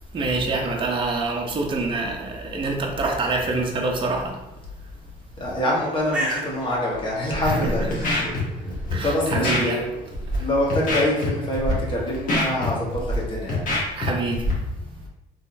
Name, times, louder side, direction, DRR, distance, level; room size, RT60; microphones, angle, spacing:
voice 1, 0.1-4.3 7.4-7.9 8.9-9.8 10.4-10.5 14.0-14.5, right 3 dB, 30° right, 0 dB, 0.6 m, -26 dB
voice 2, 5.4-8.3 8.6-9.8 10.4-13.6, left 1 dB, 30° left, -4 dB, 1.3 m, -25 dB
Bird, 5.7-13.3, right 1 dB, 5° right, 1.0 m, -38 dB
Scratching (performance technique), 7.3-7.5 7.9-8.4 8.7-8.9 9.3-9.6 10.1-10.4 10.7-11.3 11.5-11.7 12.1-13.1 13.5-14.1 14.3-14.5, left 1 dB, 55° left, 1.3 m, -25 dB
3.5 x 3.0 x 2.7 m, 0.99 s
cardioid pair, 110°, 17 cm